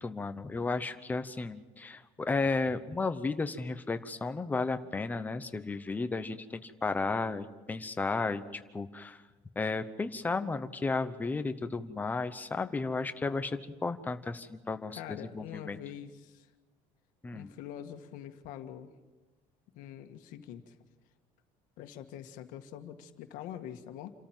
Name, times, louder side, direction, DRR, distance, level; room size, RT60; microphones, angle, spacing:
voice 1, 0.0-9.2 9.6-15.8 17.2-17.5, left 3 dB, 10° left, 10 dB, 0.8 m, -33 dB
voice 2, 14.9-16.5 17.3-18.9 19.7-20.7 21.8-24.1, left 10 dB, 70° left, 6 dB, 1.7 m, -44 dB
28.5 x 13.5 x 7.4 m, 1.2 s
cardioid pair, 175°, 14 cm